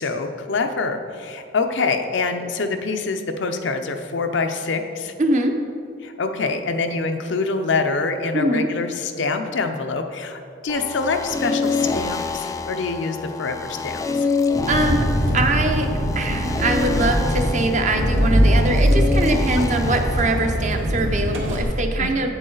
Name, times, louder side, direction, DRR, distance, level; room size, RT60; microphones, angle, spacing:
voice 1, 0.0-5.1 6.0-14.3 19.5-19.7 22.0-22.3, left 4 dB, 65° left, 6 dB, 0.6 m, -25 dB
voice 2, 5.2-5.5 8.3-8.7 14.7-15.1 15.3-15.9 16.2-22.3, right 2 dB, 40° right, 4 dB, 0.7 m, -22 dB
sound 1, 10.7-20.5, left 4 dB, 15° left, 0.3 m, -27 dB
Engine, 14.5-21.6, equal, 75° right, 1.5 m, -21 dB
8.6 x 8.0 x 3.9 m, 2.4 s
head